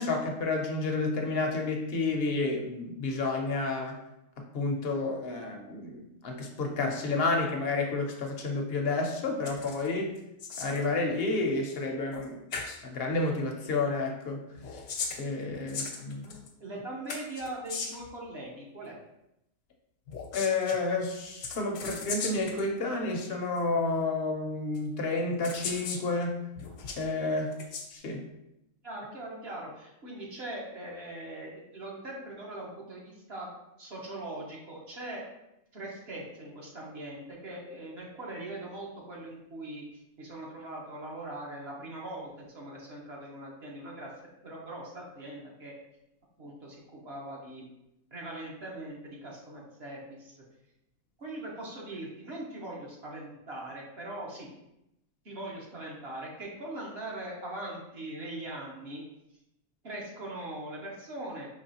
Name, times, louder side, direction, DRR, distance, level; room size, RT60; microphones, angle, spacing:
voice 1, 0.0-4.0 4.5-10.1 10.6-12.4 12.8-14.4 14.7-14.8 15.2-16.2 20.3-26.4 27.0-27.5 27.9-28.2, left 3 dB, 55° left, 2 dB, 0.8 m, -30 dB
sound 1, 9.4-9.9 10.2-10.9 12.1-12.2 12.5-12.8 14.6-16.5 17.1-18.1 20.1-20.8 21.4-22.6 23.6-23.7 24.7-24.8 25.4-26.1 26.6-27.0 27.5-27.9, left 5 dB, 80° left, 1.1 m, -37 dB
voice 2, 16.2-19.0 28.8-33.5 33.8-35.2 35.7-39.8 40.2-44.1 44.4-45.8 46.4-47.7 48.1-50.4 51.2-54.5 55.2-59.0 59.8-61.5, right 1 dB, 55° right, -3 dB, 1.2 m, -41 dB
5.2 x 3.1 x 2.8 m, 0.85 s
omnidirectional pair, 1.4 m